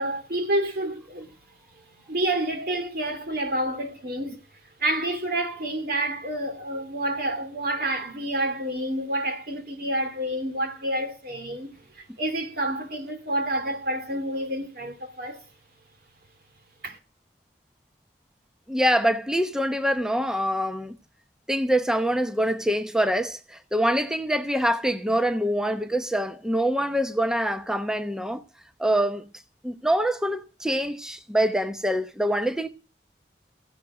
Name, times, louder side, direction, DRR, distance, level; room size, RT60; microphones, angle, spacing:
voice 1, 0.0-1.3 2.1-4.4 4.8-15.4 16.8-17.0, right 1 dB, 55° right, 2.7 m, -29 dB
voice 2, 18.7-21.0 21.5-28.4 28.8-29.3 29.6-32.7, equal, 5° right, 0.8 m, -25 dB
15.0 x 11.0 x 4.8 m
head